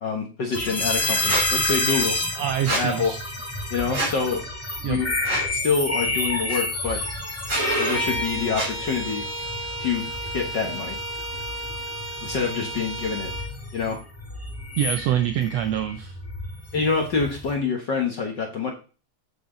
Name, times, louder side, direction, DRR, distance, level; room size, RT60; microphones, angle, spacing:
voice 1, 0.0-2.2 2.7-3.1 3.7-4.4 4.9-5.1 5.5-7.0 7.8-9.2 9.8-11.0 12.2-13.3 13.7-14.0 16.7-18.7, left 5 dB, 50° left, 2 dB, 1.3 m, -26 dB
sound 1, 0.5-17.5, left 2 dB, 5° left, 1.2 m, -30 dB
Squeak, 1.3-1.5 2.7-2.8 3.9-4.1 5.2-5.5 6.5-6.6 7.4-7.6 8.5-8.7, right 2 dB, 50° right, 5.0 m, -26 dB
voice 2, 2.4-3.2 4.8-5.0 14.8-16.2, right 10 dB, 80° right, 9 dB, 1.5 m, -25 dB
Bowed string instrument, 7.5-13.5, right 1 dB, 15° right, 1.3 m, -31 dB
8.7 x 7.0 x 3.9 m, 0.34 s
omnidirectional pair, 3.6 m